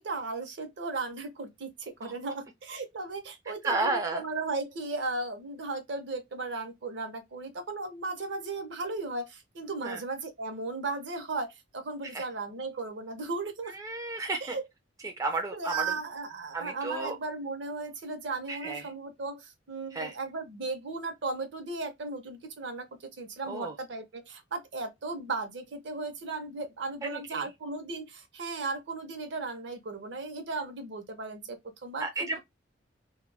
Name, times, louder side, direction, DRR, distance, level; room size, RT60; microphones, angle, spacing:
voice 1, 0.0-13.8 14.2-14.7 15.5-32.4, right 3 dB, 65° right, 0.7 m, -36 dB
voice 2, 3.6-4.2 9.8-10.0 12.1-12.2 13.7-14.6 15.0-15.8 16.5-17.2 18.5-18.8 19.9-20.1 23.5-23.7 27.0-27.5 32.0-32.4, right 3 dB, 15° right, 0.3 m, -32 dB
2.2 x 2.1 x 3.3 m
head